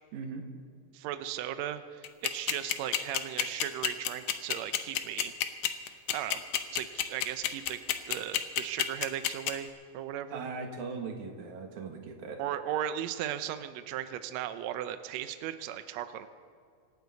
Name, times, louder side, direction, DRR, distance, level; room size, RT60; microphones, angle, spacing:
voice 1, 0.1-0.4 10.3-12.4, right 4 dB, 65° right, 3 dB, 2.8 m, -39 dB
voice 2, 0.9-5.3 6.1-6.4 6.7-7.8 8.1-10.5 12.4-16.3, right 11 dB, 90° right, 10 dB, 1.5 m, -36 dB
sound 1, 2.0-9.5, left 12 dB, 70° left, 2.0 m, -28 dB
26.0 x 11.5 x 4.1 m, 2.2 s
omnidirectional pair, 4.0 m